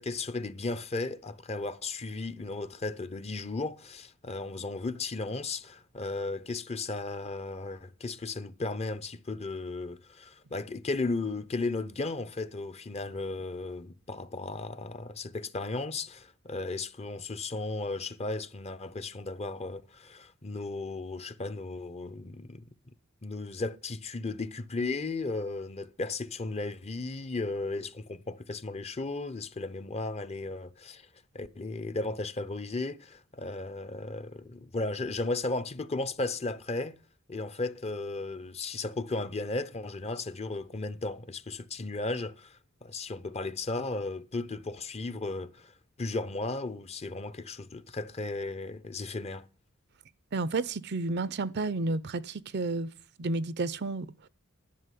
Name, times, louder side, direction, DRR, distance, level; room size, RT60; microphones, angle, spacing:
voice 1, 0.0-22.7 23.2-31.1 31.3-37.0 37.3-49.5, left 3 dB, 30° left, 0.7 m, -35 dB
voice 2, 50.3-52.9 53.2-54.3, right 3 dB, 55° right, 0.6 m, -31 dB
11.5 x 6.2 x 9.2 m
head